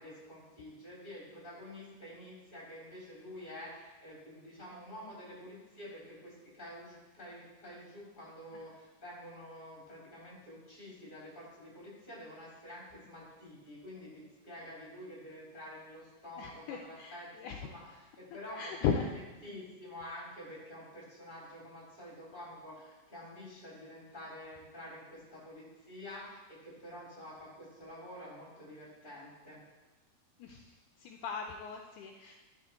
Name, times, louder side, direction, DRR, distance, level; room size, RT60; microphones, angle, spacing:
voice 1, 0.0-29.6, left 1 dB, 15° left, -6 dB, 3.0 m, -48 dB
voice 2, 16.4-17.6 18.6-19.1 30.4-32.3, left 6 dB, 80° left, 3 dB, 2.0 m, -37 dB
12.5 x 4.8 x 4.5 m, 1.1 s
omnidirectional pair, 3.7 m